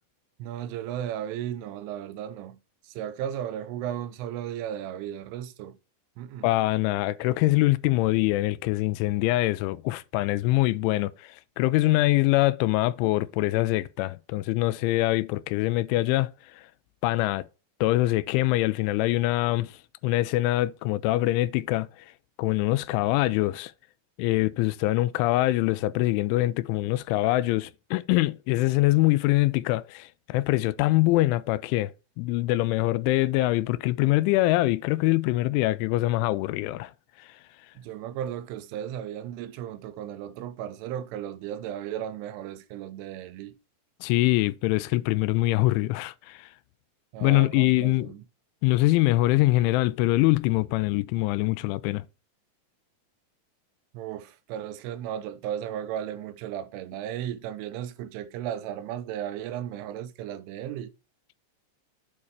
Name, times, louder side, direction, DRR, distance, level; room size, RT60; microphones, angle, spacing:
voice 1, 0.4-5.8 6.2-6.5 37.8-43.6 47.1-48.2 53.9-60.9, right 10 dB, 85° right, 3.2 m, -35 dB
voice 2, 6.4-16.3 17.0-17.5 17.8-19.8 20.0-21.9 22.4-23.7 24.2-31.9 32.2-36.9 44.0-46.5 47.2-48.1 48.6-52.0, left 18 dB, 85° left, 2.9 m, -24 dB
8.4 x 4.9 x 4.5 m
omnidirectional pair, 5.5 m